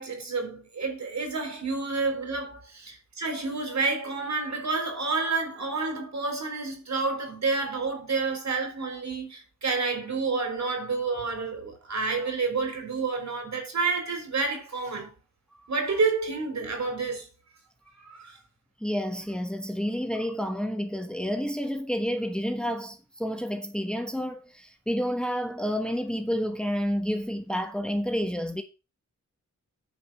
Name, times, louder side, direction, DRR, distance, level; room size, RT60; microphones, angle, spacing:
voice 1, 0.0-15.1 15.7-17.3 18.0-18.4, right 4 dB, 65° right, 4.4 m, -29 dB
voice 2, 18.8-28.6, equal, 5° left, 1.2 m, -30 dB
9.4 x 5.2 x 6.5 m
wide cardioid pair, 80°, 29 cm